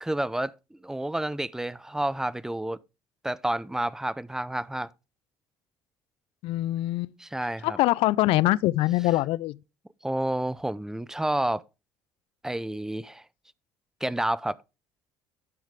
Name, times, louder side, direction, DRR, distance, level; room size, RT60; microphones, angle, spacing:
voice 1, 0.0-0.5 0.8-2.8 3.2-4.9 7.2-7.8 10.0-11.6 12.4-13.2 14.0-14.6, right 1 dB, 5° right, 0.4 m, -29 dB
voice 2, 6.4-7.1 7.6-9.6, left 17 dB, 65° left, 0.3 m, -24 dB
10.5 x 6.3 x 3.5 m
supercardioid pair, 70°, 10 cm